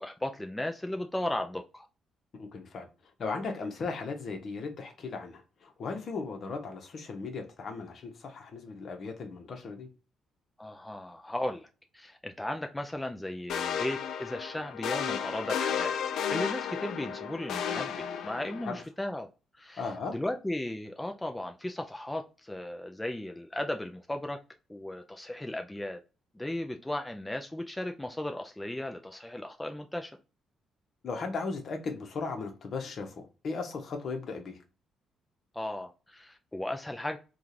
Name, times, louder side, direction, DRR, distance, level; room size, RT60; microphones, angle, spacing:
voice 1, 0.0-1.9 10.6-11.7 11.9-16.0 16.3-19.3 19.6-24.4 24.7-26.0 26.3-30.1 35.5-37.2, left 1 dB, 10° left, 0.4 m, -36 dB
voice 2, 2.4-2.9 3.2-9.9 18.6-18.8 19.8-20.2 31.0-34.6, left 4 dB, 55° left, 0.9 m, -37 dB
sound 1, 13.5-18.8, left 8 dB, 75° left, 0.4 m, -33 dB
3.6 x 2.4 x 2.7 m
cardioid pair, 90°, 0 cm